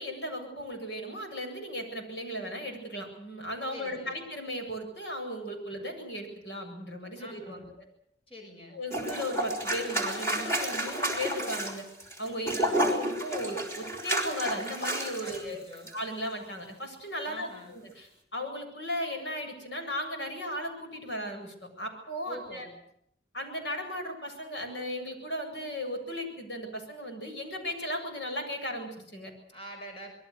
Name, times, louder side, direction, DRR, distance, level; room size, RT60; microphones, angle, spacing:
voice 1, 0.0-7.7 8.7-11.8 12.2-15.7 15.9-22.7 23.3-29.3, equal, 80° left, 4 dB, 7.9 m, -36 dB
voice 2, 3.7-4.2 7.2-7.7 8.3-8.8 12.5-12.9 15.2-15.9 17.3-17.8 22.3-22.8 29.5-30.1, equal, 30° left, 2 dB, 6.0 m, -46 dB
sound 1, 8.9-15.4 15.7-15.9, right 1 dB, 15° left, 6.1 m, -31 dB
26.0 x 22.0 x 6.7 m, 0.70 s
head